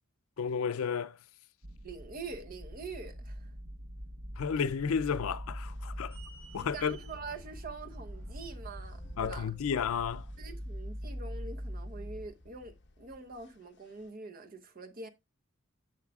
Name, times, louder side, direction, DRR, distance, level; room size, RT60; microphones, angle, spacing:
voice 1, 0.4-1.2 4.4-6.2 6.5-7.0 9.2-10.3, left 6 dB, 80° left, 0.5 m, -32 dB
sound 1, 1.6-12.3, equal, 85° right, 1.0 m, -43 dB
voice 2, 1.8-3.5 6.6-9.5 10.4-15.1, right 3 dB, 45° right, 0.9 m, -45 dB
sound 2, 4.5-10.1, right 4 dB, 65° right, 2.8 m, -60 dB
sound 3, 5.6-14.1, left 1 dB, 55° left, 1.0 m, -55 dB
10.5 x 6.5 x 2.3 m
head